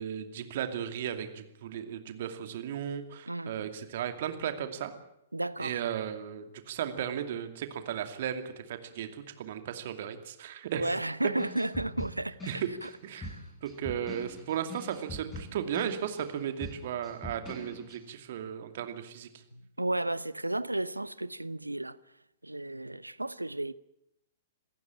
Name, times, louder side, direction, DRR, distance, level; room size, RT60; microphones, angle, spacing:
voice 1, 0.0-4.9 5.6-11.0 12.5-13.3 13.6-19.3, right 9 dB, 50° right, 2.5 m, -35 dB
voice 2, 3.3-3.7 5.3-5.8 10.7-12.9 13.2-13.5 19.8-22.0 22.4-23.7, right 2 dB, 85° right, 0.9 m, -33 dB
sound 1, 11.4-18.0, left 1 dB, 10° left, 7.9 m, -43 dB
27.0 x 15.0 x 8.9 m
figure-of-eight pair, 110°, 0 cm